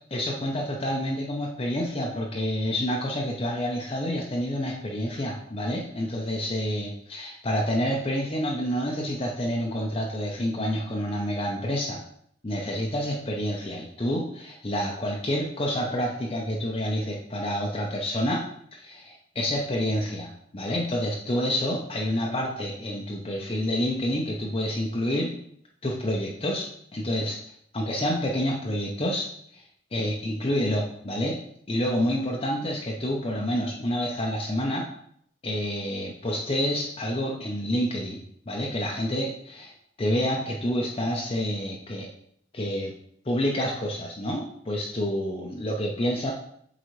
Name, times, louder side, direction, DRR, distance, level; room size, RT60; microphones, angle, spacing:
voice 1, 0.1-12.0 12.4-25.4 25.8-27.4 27.7-29.6 29.9-31.4 31.7-34.9 35.4-39.7 40.0-42.1 42.5-42.9 43.2-46.3, equal, 30° left, -2 dB, 0.7 m, -28 dB
7.9 x 3.9 x 3.2 m, 0.68 s
head